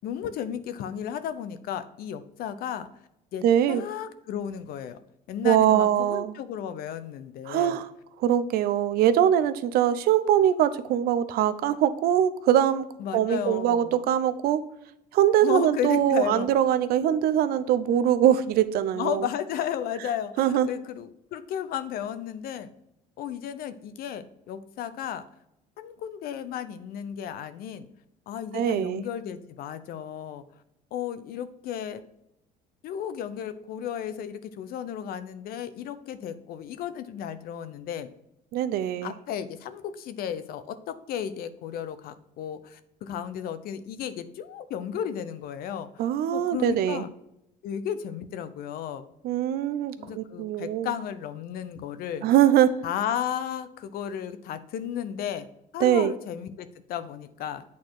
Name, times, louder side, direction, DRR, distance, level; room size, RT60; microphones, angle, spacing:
voice 1, 0.0-2.9 3.3-5.0 5.3-7.8 13.0-14.1 15.4-16.5 18.9-22.7 23.2-25.3 25.8-27.9 28.3-30.4 30.9-32.0 32.8-38.1 39.0-46.0 46.3-47.1 47.6-49.0 50.0-52.3 52.8-55.5 55.7-57.6, left 9 dB, 60° left, 12 dB, 0.7 m, -34 dB
voice 2, 3.4-3.8 5.4-6.3 7.5-7.9 8.2-12.8 13.1-14.6 15.1-19.3 20.4-20.7 28.5-29.0 38.5-39.1 46.0-47.0 49.2-50.9 52.2-52.7 55.8-56.1, right 10 dB, 65° right, 13 dB, 0.6 m, -22 dB
8.4 x 4.2 x 4.8 m, 0.82 s
cardioid pair, 120°, 17 cm